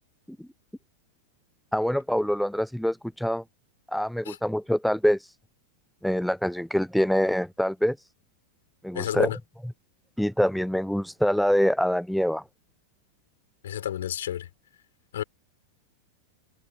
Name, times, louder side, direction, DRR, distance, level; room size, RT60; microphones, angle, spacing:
voice 1, 1.7-3.4 3.9-5.2 6.0-8.0 8.8-9.3 10.2-12.4, equal, ahead, 0.6 m, -25 dB
voice 2, 8.9-9.4 13.6-14.5 15.1-15.2, left 11 dB, 60° left, 6.0 m, -30 dB
figure-of-eight pair, 90°, 0 cm